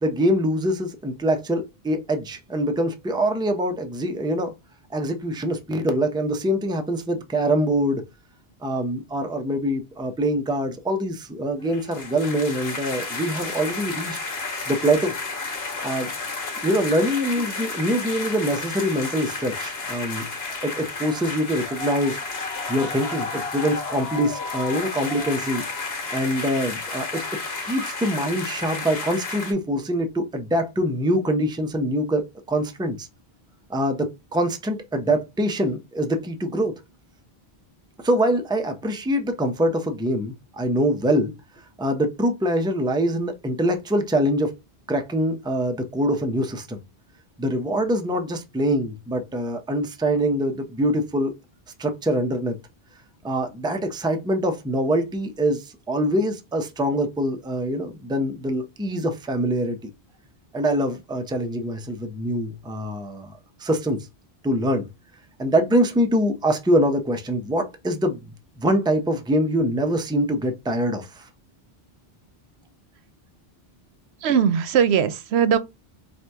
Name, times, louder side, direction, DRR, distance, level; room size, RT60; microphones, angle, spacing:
voice 1, 0.0-4.5 4.9-8.0 8.6-14.2 14.7-15.1 15.8-16.1 16.6-20.3 20.6-22.2 22.7-25.6 26.1-27.2 27.6-33.1 33.7-36.7 38.0-41.3 41.8-44.5 44.9-46.8 47.4-51.3 51.8-52.6 53.2-59.9 60.5-64.1 64.4-64.9 65.4-68.3 68.6-71.3, equal, 5° right, 0.4 m, -24 dB
sound 1, 11.6-29.5, left 3 dB, 75° left, 1.4 m, -32 dB
voice 2, 74.2-75.6, right 7 dB, 90° right, 0.8 m, -20 dB
4.3 x 2.6 x 3.4 m
omnidirectional pair, 1.1 m